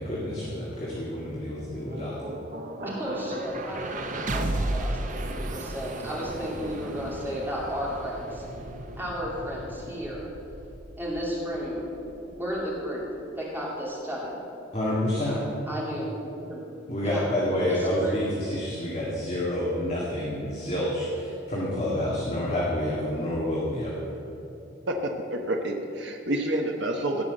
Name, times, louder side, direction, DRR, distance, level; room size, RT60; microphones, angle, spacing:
voice 1, 0.0-2.3 14.7-15.4 16.9-24.1, left 1 dB, 35° left, -6 dB, 1.9 m, -28 dB
sound 1, 1.3-13.4, right 1 dB, 40° right, 0.8 m, -35 dB
voice 2, 2.8-4.0 4.3-8.4 9.0-10.2 11.0-11.8 12.2-14.4 15.2-16.6 17.0-17.2 17.7-18.2, equal, 10° right, -5 dB, 2.6 m, -33 dB
voice 3, 24.9-25.7 26.0-27.2, right 1 dB, 65° right, 1 dB, 1.1 m, -28 dB
17.0 x 5.9 x 7.9 m, 2.9 s
head